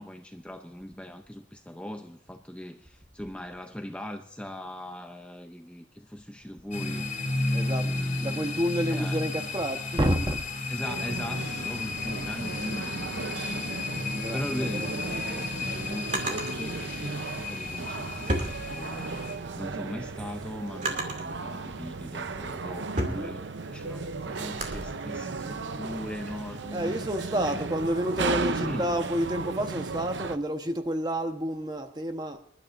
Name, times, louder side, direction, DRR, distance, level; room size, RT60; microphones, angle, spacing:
voice 1, 0.0-7.1 7.8-8.4 8.9-9.3 10.7-13.2 13.5-13.7 14.3-18.3 18.6-27.5 28.5-28.9, left 1 dB, 5° left, 0.6 m, -39 dB
sound 1, 6.7-19.4, left 2 dB, 45° left, 2.8 m, -33 dB
voice 2, 7.3-7.9 8.2-10.4 14.1-14.9 15.8-15.9 23.0-23.3 26.7-32.5, equal, 25° right, 1.1 m, -30 dB
sound 2, 10.8-30.4, right 4 dB, 80° right, 0.7 m, -35 dB
Drawer open or close, 15.1-16.5 17.6-19.2 19.7-21.4 22.0-24.8, right 1 dB, 40° right, 2.5 m, -34 dB
26.0 x 12.0 x 2.6 m
head